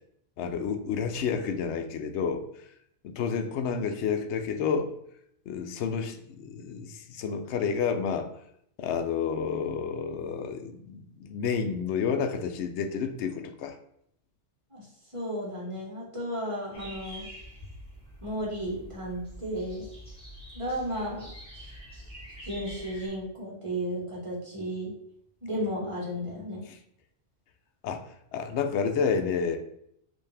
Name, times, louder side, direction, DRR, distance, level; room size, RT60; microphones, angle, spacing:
voice 1, 0.4-2.4 3.0-5.0 5.5-8.3 8.8-13.8 27.8-29.6, left 6 dB, 70° left, 7 dB, 0.8 m, -30 dB
voice 2, 15.1-17.3 18.2-19.9 20.5-21.7 22.4-24.9 25.4-26.6, equal, 25° right, -5 dB, 1.5 m, -34 dB
sound 1, 16.7-23.1, equal, 5° left, 1.7 m, -46 dB
5.5 x 2.8 x 3.3 m, 0.72 s
omnidirectional pair, 1.3 m